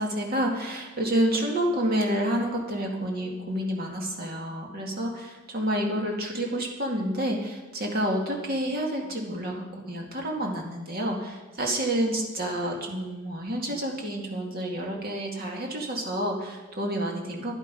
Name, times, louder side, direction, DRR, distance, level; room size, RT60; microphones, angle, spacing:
voice 1, 0.0-17.5, right 1 dB, 50° right, 0 dB, 2.1 m, -29 dB
13.0 x 11.0 x 5.3 m, 1.2 s
head